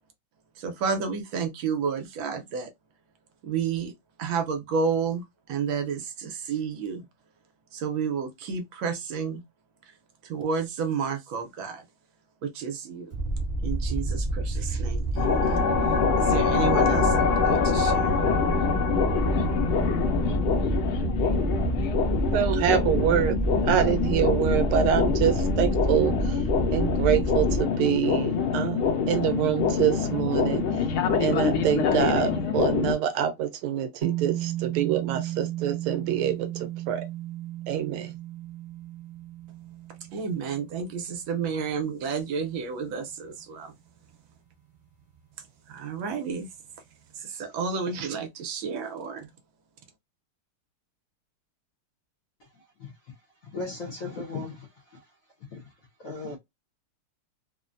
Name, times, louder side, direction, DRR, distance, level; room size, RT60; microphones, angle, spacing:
voice 1, 0.6-2.7 3.4-3.9 4.2-7.0 7.7-9.4 10.2-11.8 12.4-13.1 13.6-15.6 16.2-18.2 40.1-43.7 45.7-46.5 47.2-49.3, right 6 dB, 70° right, 1.4 m, -31 dB
sound 1, 13.1-27.6, right 2 dB, 15° left, 0.8 m, -28 dB
sound 2, 15.2-32.9, left 6 dB, 80° left, 1.5 m, -25 dB
voice 2, 22.3-23.4 23.6-26.4 26.7-30.6 31.2-37.1 37.7-38.1, right 10 dB, 90° right, 1.5 m, -26 dB
sound 3, 34.0-42.5, right 15 dB, 35° right, 0.7 m, -35 dB
voice 3, 53.5-54.7 55.5-55.6 56.0-56.4, left 3 dB, 60° left, 0.9 m, -35 dB
3.8 x 2.1 x 2.5 m
omnidirectional pair, 2.3 m